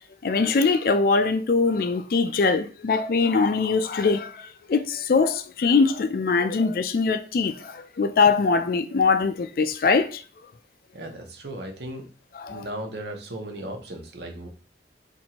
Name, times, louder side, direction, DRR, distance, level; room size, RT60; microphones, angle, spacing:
voice 1, 0.2-10.2 12.4-12.7, left 4 dB, 55° left, 0.4 m, -22 dB
voice 2, 10.9-12.1 12.5-14.5, right 1 dB, 70° right, 0.8 m, -36 dB
2.9 x 2.6 x 4.3 m
head